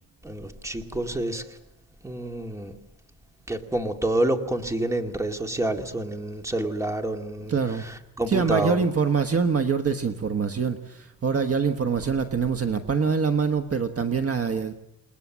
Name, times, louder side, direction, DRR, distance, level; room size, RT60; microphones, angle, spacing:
voice 1, 0.2-1.6 2.0-2.8 3.5-7.6 7.8-8.8, right 1 dB, 10° right, 5 dB, 2.2 m, -28 dB
voice 2, 7.5-7.8 8.3-14.7, right 5 dB, 40° right, 7 dB, 1.3 m, -24 dB
29.0 x 20.0 x 7.4 m, 0.83 s
wide cardioid pair, 150°, 36 cm